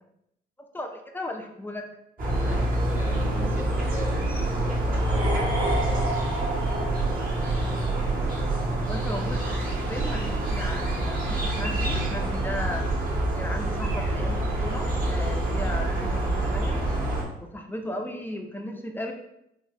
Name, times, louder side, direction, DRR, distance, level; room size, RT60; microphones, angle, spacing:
voice 1, 0.7-1.9 8.9-12.9 13.4-16.8 17.4-19.1, left 1 dB, 10° left, 3 dB, 0.6 m, -35 dB
sound 1, 2.2-17.2, right 1 dB, 45° right, 1.4 m, -26 dB
voice 2, 2.4-6.2, right 1 dB, 10° right, -1 dB, 0.9 m, -38 dB
sound 2, 4.9-7.9, right 2 dB, 25° right, 1.5 m, -32 dB
4.5 x 2.4 x 3.0 m, 0.80 s
cardioid pair, 90°, 20 cm